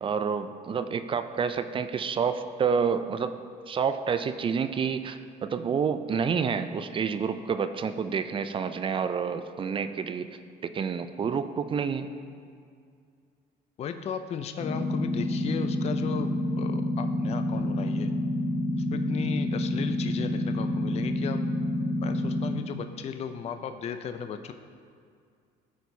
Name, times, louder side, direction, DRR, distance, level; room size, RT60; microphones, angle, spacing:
voice 1, 0.0-3.3 3.7-10.3 10.7-12.1, right 6 dB, 30° right, 10 dB, 0.3 m, -28 dB
voice 2, 13.8-18.1 18.7-21.4 22.0-24.5, left 7 dB, 40° left, 8 dB, 0.4 m, -35 dB
sound 1, 14.6-22.5, left 1 dB, 5° left, 1.3 m, -28 dB
13.5 x 4.5 x 2.7 m, 2.2 s
cardioid pair, 110°, 17 cm